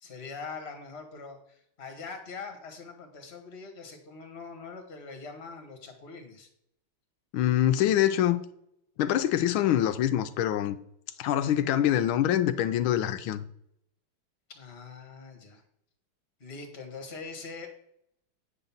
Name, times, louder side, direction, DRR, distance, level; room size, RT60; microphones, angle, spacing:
voice 1, 0.0-6.5 14.5-15.6 16.4-17.7, left 4 dB, 30° left, 1.7 m, -43 dB
voice 2, 7.3-8.4 9.0-10.8 11.2-13.4, left 11 dB, 75° left, 1.3 m, -25 dB
9.4 x 3.9 x 7.1 m
omnidirectional pair, 2.4 m